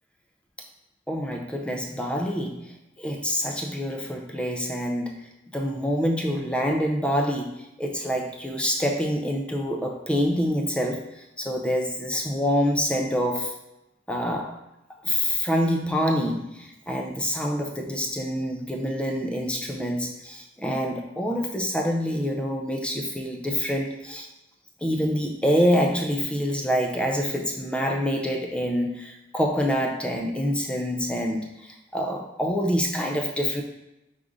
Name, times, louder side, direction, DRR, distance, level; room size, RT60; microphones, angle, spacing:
voice 1, 1.1-5.3 5.5-13.5 14.1-14.6 15.0-24.3 24.8-33.6, equal, 5° left, 2 dB, 0.4 m, -26 dB
4.7 x 2.5 x 3.8 m, 0.93 s
head